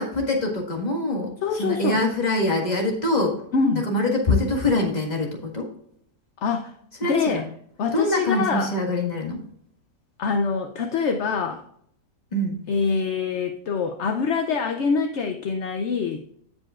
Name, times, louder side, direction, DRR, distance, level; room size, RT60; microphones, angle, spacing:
voice 1, 0.0-1.3 1.6-3.4 3.8-5.7 7.0-7.4 7.9-9.4 12.3-12.6, left 2 dB, 25° left, 0 dB, 1.7 m, -24 dB
voice 2, 1.4-2.0 3.5-3.8 6.4-6.7 7.0-7.4 7.8-8.7 10.2-11.6 12.7-16.2, left 5 dB, 60° left, 5 dB, 0.8 m, -24 dB
16.0 x 5.3 x 2.4 m, 0.67 s
omnidirectional pair, 1.7 m